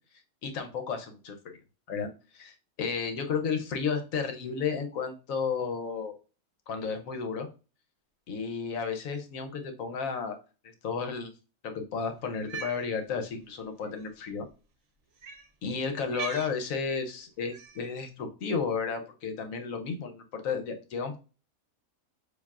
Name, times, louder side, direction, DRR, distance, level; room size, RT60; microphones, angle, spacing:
voice 1, 0.4-1.6 1.9-6.1 6.7-7.5 8.3-10.4 10.6-11.3 11.6-14.5 15.6-21.2, left 5 dB, 70° left, 6 dB, 1.1 m, -33 dB
Cat, 12.3-12.8 13.9-14.0 15.2-15.5 16.1-16.6 17.5-17.9, right 6 dB, 60° right, 1.0 m, -40 dB
6.8 x 2.7 x 2.4 m, 0.34 s
omnidirectional pair, 1.5 m